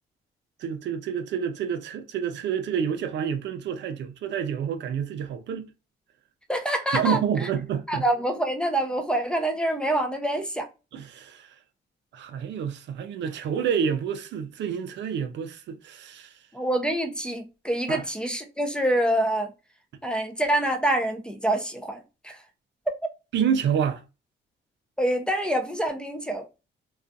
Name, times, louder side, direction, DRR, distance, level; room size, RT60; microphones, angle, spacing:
voice 1, 0.6-5.7 6.9-8.0 10.9-11.6 12.1-16.3 17.9-18.1 23.3-24.0, right 7 dB, 65° right, 0.4 m, -28 dB
voice 2, 6.5-7.2 7.9-10.7 16.5-19.5 20.0-22.4 25.0-26.4, right 1 dB, 5° left, 0.4 m, -26 dB
2.4 x 2.3 x 2.5 m
cardioid pair, 90°, 20 cm